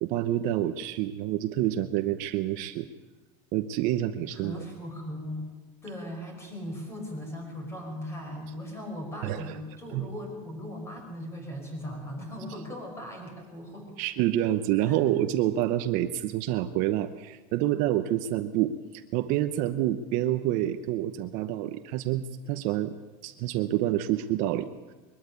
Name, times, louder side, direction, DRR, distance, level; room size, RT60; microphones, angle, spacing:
voice 1, 0.0-2.9 3.5-4.6 9.2-9.6 9.9-10.1 14.0-22.9 23.2-24.7, right 13 dB, 50° right, 9 dB, 1.0 m, -28 dB
voice 2, 4.3-5.5 5.8-14.0 14.9-15.0, equal, 15° left, 3 dB, 5.4 m, -38 dB
22.0 x 13.0 x 9.5 m, 1.2 s
supercardioid pair, 155°, 18 cm